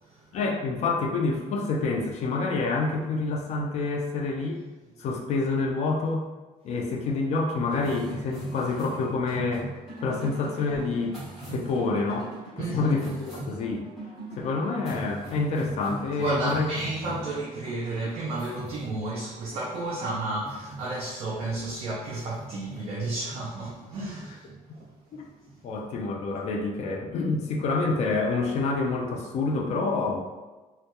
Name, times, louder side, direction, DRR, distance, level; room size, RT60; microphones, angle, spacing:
voice 1, 0.3-4.6 5.0-6.3 6.6-9.7 10.0-11.2 11.5-12.3 12.6-13.9 14.4-16.7 25.6-30.4, left 3 dB, 55° left, 1 dB, 0.4 m, -27 dB
sound 1, 7.7-26.3, right 2 dB, ahead, 1.2 m, -41 dB
voice 2, 12.6-13.0 16.2-24.5 24.7-24.8, right 2 dB, 45° right, -5 dB, 0.4 m, -32 dB
2.2 x 2.2 x 2.8 m, 1.2 s
cardioid pair, 170°, 14 cm